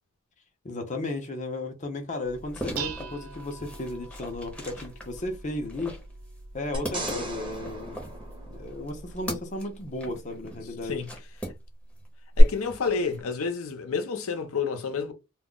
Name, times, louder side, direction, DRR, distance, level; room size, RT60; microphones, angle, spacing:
voice 1, 0.6-6.0 6.5-8.0 8.5-11.0, left 2 dB, 35° left, 0.5 m, -34 dB
Dishes pots and pans, 2.2-9.3, right 5 dB, 80° right, 0.5 m, -43 dB
sound 1, 2.3-12.1 12.4-13.2, equal, 5° left, 0.7 m, -41 dB
sound 2, 6.7-9.2 12.4-12.5, right 1 dB, 25° right, 0.8 m, -35 dB
voice 2, 12.4-15.1, left 5 dB, 85° left, 0.6 m, -29 dB
2.2 x 2.0 x 3.6 m
head